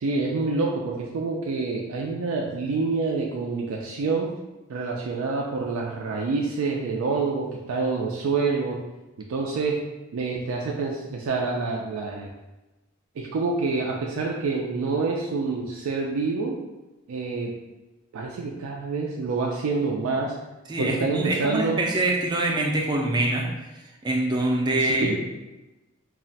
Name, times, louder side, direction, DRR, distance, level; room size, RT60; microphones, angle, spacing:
voice 1, 0.0-4.3 4.7-8.8 9.2-9.8 10.1-12.3 13.2-16.5 17.1-17.5 18.1-20.3 20.8-21.9 24.8-25.2, right 4 dB, 90° right, -2 dB, 0.4 m, -27 dB
voice 2, 20.7-23.5 24.0-25.2, right 2 dB, 20° right, 0 dB, 0.4 m, -24 dB
2.4 x 2.1 x 3.9 m, 1.1 s
head